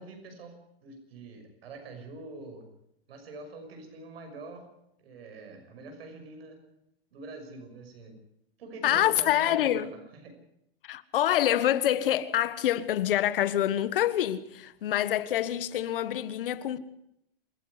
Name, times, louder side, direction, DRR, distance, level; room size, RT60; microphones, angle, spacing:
voice 1, 0.0-2.7 3.1-4.7 5.0-6.6 7.1-8.2 8.6-10.3, right 2 dB, 80° right, 6.2 m, -44 dB
voice 2, 8.8-9.9 10.8-16.8, left 12 dB, 65° left, 1.4 m, -26 dB
27.5 x 9.9 x 9.8 m
supercardioid pair, 170°, 30 cm